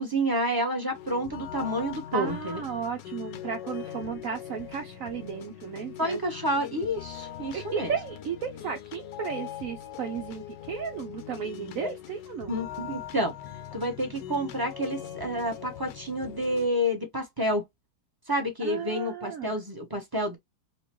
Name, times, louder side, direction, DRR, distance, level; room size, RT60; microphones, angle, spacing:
voice 1, 0.0-2.6 6.0-7.9 12.5-13.3 13.7-17.6 18.3-20.4, equal, 15° right, 0.8 m, -29 dB
sound 1, 0.9-16.7, left 11 dB, 70° left, 1.2 m, -41 dB
voice 2, 2.1-6.2 7.5-12.5 18.6-19.6, right 7 dB, 85° right, 0.7 m, -34 dB
4.5 x 2.4 x 2.9 m
omnidirectional pair, 2.1 m